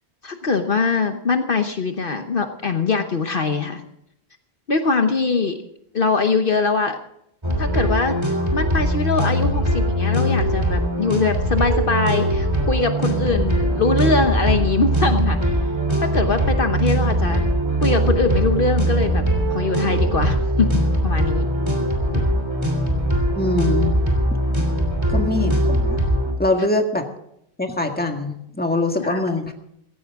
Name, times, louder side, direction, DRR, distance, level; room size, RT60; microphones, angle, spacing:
voice 1, 0.2-3.8 4.7-5.6 5.9-7.0 7.6-8.2 8.5-15.5 16.0-17.4 17.8-21.5 22.1-22.2 29.0-29.2, left 4 dB, 55° left, 6 dB, 1.2 m, -22 dB
sound 1, 7.4-26.3, right 1 dB, 25° right, 3.3 m, -21 dB
voice 2, 23.3-24.0 25.1-26.1 26.4-27.0 27.6-29.5, left 2 dB, 10° left, 3 dB, 1.7 m, -23 dB
17.0 x 16.5 x 3.7 m, 0.76 s
omnidirectional pair, 1.1 m